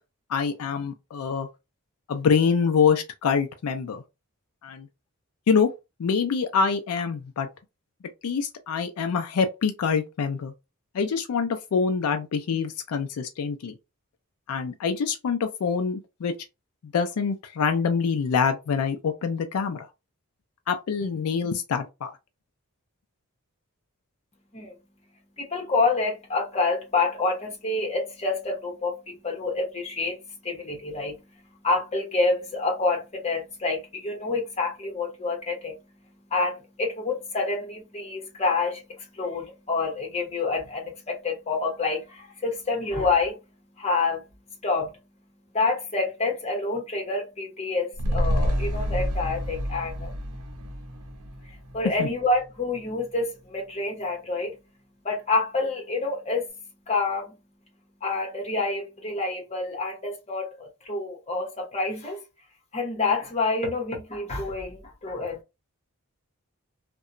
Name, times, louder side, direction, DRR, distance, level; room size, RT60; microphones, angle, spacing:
voice 1, 0.3-1.5 2.1-4.0 4.6-4.9 5.5-5.7 6.0-7.5 8.2-10.5 10.9-13.8 14.5-16.3 16.8-19.9 20.7-22.1 52.0-52.1, left 6 dB, 80° left, 0.4 m, -25 dB
voice 2, 25.4-45.0 45.5-50.1 51.4-54.6 55.0-56.5 56.9-57.4 58.0-62.2 62.7-65.4, left 3 dB, 30° left, 0.9 m, -28 dB
sound 1, 47.9-52.5 52.8-52.9, equal, 85° right, 0.6 m, -28 dB
2.8 x 2.2 x 2.4 m
head